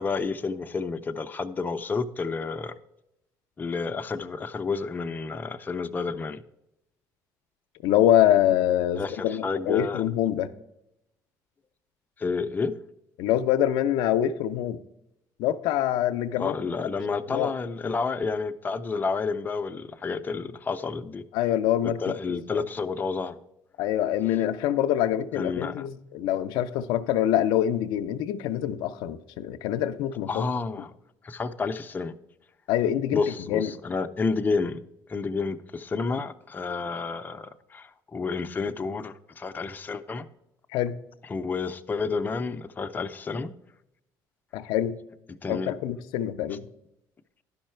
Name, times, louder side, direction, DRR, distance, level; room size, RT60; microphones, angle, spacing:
voice 1, 0.0-2.7 3.6-6.4 9.0-10.0 12.2-12.7 16.4-21.2 22.0-23.4 25.3-25.8 30.3-30.9 31.2-32.1 33.1-34.8 35.1-40.3 41.3-43.5 45.4-45.7, left 4 dB, 25° left, 0.6 m, -30 dB
voice 2, 7.8-10.5 13.2-14.8 15.4-16.5 17.3-17.5 21.3-22.6 23.8-30.5 32.7-33.7 40.7-41.0 44.5-45.0 45.5-46.7, left 11 dB, 85° left, 0.5 m, -25 dB
11.5 x 5.5 x 4.4 m
cardioid pair, 100°, 7 cm